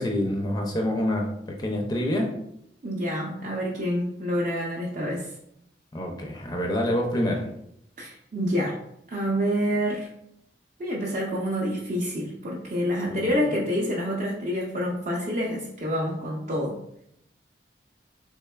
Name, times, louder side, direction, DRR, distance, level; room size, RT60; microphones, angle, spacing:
voice 1, 0.0-2.3 5.9-7.5 13.1-13.3, left 1 dB, 20° left, 1 dB, 0.4 m, -27 dB
voice 2, 2.8-5.3 8.0-8.8 9.1-10.1 10.8-16.8, equal, 45° right, -4 dB, 0.5 m, -27 dB
3.5 x 3.3 x 2.2 m, 0.75 s
head